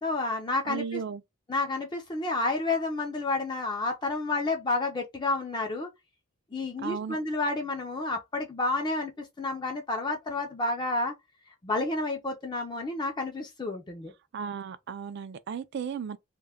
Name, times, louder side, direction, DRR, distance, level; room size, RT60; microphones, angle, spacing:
voice 1, 0.0-1.0 1.5-5.9 6.5-11.1 11.6-14.1, left 2 dB, 20° left, 0.4 m, -30 dB
voice 2, 0.6-1.2 6.8-7.2 14.3-16.2, right 6 dB, 50° right, 0.3 m, -35 dB
2.3 x 2.1 x 3.3 m
head